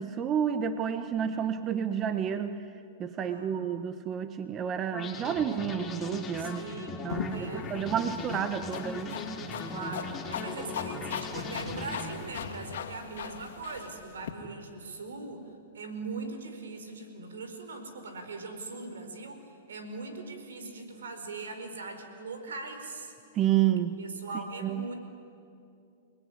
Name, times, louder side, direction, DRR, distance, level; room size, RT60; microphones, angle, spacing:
voice 1, 0.0-2.6 3.0-6.7 7.0-9.2 23.3-24.0 24.6-24.9, right 9 dB, 30° right, 10 dB, 1.1 m, -30 dB
voice 2, 3.3-3.8 6.4-7.7 9.7-23.1 24.0-24.9, right 3 dB, 85° right, 7 dB, 4.7 m, -41 dB
sound 1, 4.9-12.6, left 3 dB, 20° left, 4.6 m, -39 dB
sound 2, 7.1-14.3, left 7 dB, 75° left, 2.5 m, -40 dB
30.0 x 20.0 x 9.9 m, 2.6 s
hypercardioid pair, 125°, 0 cm